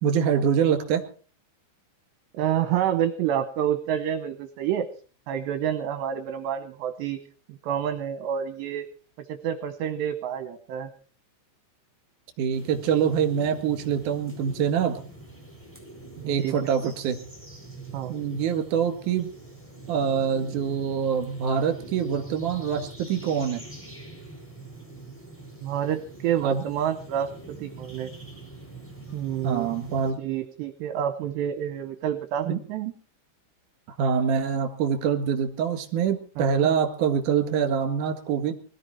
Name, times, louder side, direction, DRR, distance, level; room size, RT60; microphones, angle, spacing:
voice 1, 0.0-1.0 12.4-15.0 16.3-17.2 18.1-19.3 19.9-23.6 26.4-26.6 29.4-30.2 32.5-32.6 33.9-38.5, right 7 dB, 50° right, 6 dB, 3.0 m, -25 dB
voice 2, 2.3-4.9 5.3-7.2 7.5-8.9 9.3-10.9 16.2-16.6 16.8-16.9 17.9-18.1 25.6-27.3 27.6-28.1 29.1-29.8 30.2-32.9 36.4-36.7, right 10 dB, 75° right, 9 dB, 2.8 m, -28 dB
sound 1, 12.5-30.1, right 2 dB, 5° left, 4.5 m, -43 dB
21.0 x 13.5 x 4.4 m, 0.41 s
omnidirectional pair, 5.5 m